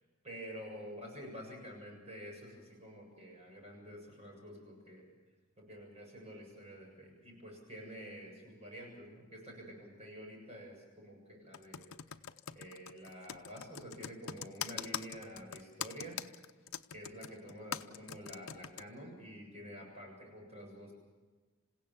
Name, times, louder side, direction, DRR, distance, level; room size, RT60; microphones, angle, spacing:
voice 1, 0.2-5.1 5.7-11.9 12.5-16.2 16.9-20.9, equal, 30° right, 0 dB, 7.4 m, -49 dB
Computer keyboard, 11.5-18.8, left 9 dB, 75° left, 0.7 m, -42 dB
28.0 x 16.5 x 7.3 m, 1.3 s
head